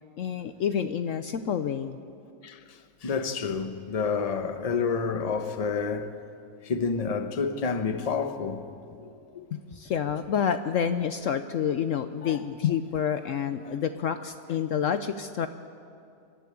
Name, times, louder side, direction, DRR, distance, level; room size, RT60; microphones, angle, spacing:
voice 1, 0.2-2.0 9.5-15.5, left 8 dB, 65° left, 0.9 m, -28 dB
voice 2, 2.4-6.1 6.6-8.7 9.0-9.5 12.2-12.4 13.6-13.8 14.5-14.6, left 5 dB, 30° left, 0.9 m, -29 dB
27.5 x 12.0 x 8.6 m
omnidirectional pair, 1.6 m